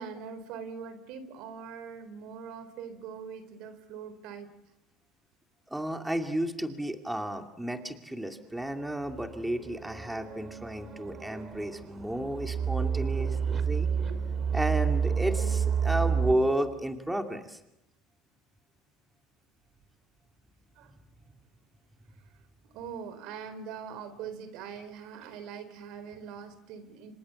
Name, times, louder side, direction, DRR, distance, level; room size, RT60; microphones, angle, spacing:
voice 1, 0.0-4.6 14.1-14.2 20.8-20.9 22.2-22.3 22.6-27.1, right 6 dB, 70° right, 12 dB, 4.1 m, -42 dB
voice 2, 5.7-13.9 14.5-17.6, right 1 dB, 5° right, 5 dB, 2.5 m, -32 dB
sound 1, 9.1-16.4, right 6 dB, 35° right, 3.3 m, -30 dB
28.0 x 25.5 x 7.2 m, 0.86 s
supercardioid pair, 120°, 0 cm